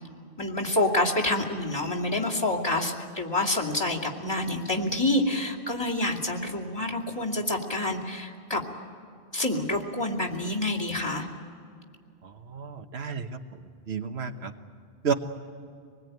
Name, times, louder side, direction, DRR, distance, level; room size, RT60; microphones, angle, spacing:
voice 1, 0.4-8.6 9.3-11.3, left 1 dB, 25° left, 1 dB, 2.8 m, -27 dB
voice 2, 12.2-13.4 13.9-14.5 15.0-15.1, right 6 dB, 75° right, 6 dB, 1.4 m, -31 dB
26.0 x 20.5 x 9.2 m, 2.3 s
omnidirectional pair, 1.1 m